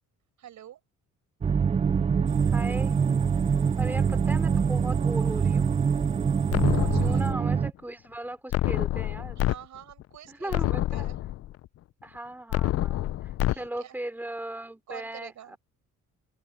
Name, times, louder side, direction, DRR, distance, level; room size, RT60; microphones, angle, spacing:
voice 1, 0.4-0.8 6.9-7.2 9.4-10.6 10.9-11.2 13.4-14.0 14.9-15.6, right 11 dB, 70° right, 7.9 m, -46 dB
sound 1, 1.4-7.7, right 6 dB, 20° right, 0.4 m, -24 dB
sound 2, 2.3-7.3, right 7 dB, 40° right, 1.7 m, -49 dB
voice 2, 2.5-3.0 3.8-5.8 7.0-9.4 10.3-11.1 12.0-15.6, right 1 dB, 5° right, 2.9 m, -38 dB
sound 3, 6.5-7.5 8.5-9.5 10.0-10.1 10.5-11.5 12.5-13.5, left 14 dB, 55° left, 0.4 m, -27 dB
open air
cardioid pair, 90°, 30 cm